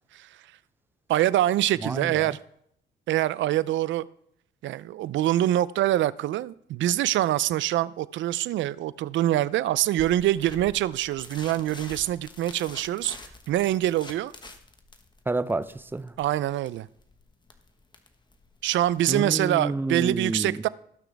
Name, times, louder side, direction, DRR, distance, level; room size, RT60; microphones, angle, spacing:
voice 1, 1.1-2.4 3.1-4.1 4.6-13.2 13.5-14.3 16.2-16.9 18.6-20.7, right 13 dB, 75° right, 0.5 m, -25 dB
voice 2, 1.8-2.4 15.3-16.1 19.1-20.7, right 2 dB, 10° right, 0.5 m, -29 dB
sound 1, 10.0-19.1, left 2 dB, 20° left, 1.3 m, -47 dB
17.5 x 6.1 x 3.5 m
cardioid pair, 90°, 20 cm